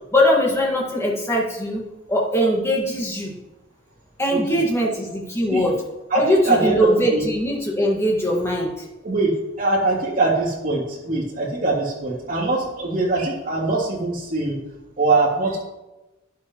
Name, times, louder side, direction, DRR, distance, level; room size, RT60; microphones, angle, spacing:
voice 1, 0.1-3.4 4.2-5.8 6.1-8.9, equal, 15° left, -2 dB, 1.9 m, -21 dB
voice 2, 4.3-4.9 5.5-5.7 6.1-6.8 7.1-7.3 9.0-9.3 9.6-14.6 15.0-15.6, right 3 dB, 40° right, -4 dB, 3.1 m, -22 dB
11.5 x 10.5 x 3.2 m, 1.0 s
head